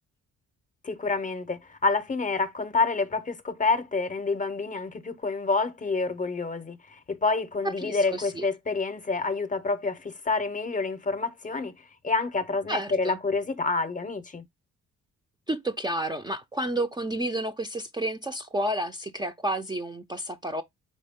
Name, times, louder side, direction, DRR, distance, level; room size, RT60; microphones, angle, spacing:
voice 1, 0.8-11.7 12.0-14.4, left 3 dB, 25° left, 0.7 m, -28 dB
voice 2, 7.6-8.5 12.7-13.2 15.5-20.6, right 1 dB, 15° right, 0.5 m, -31 dB
4.2 x 3.5 x 3.5 m
cardioid pair, 90°, 30 cm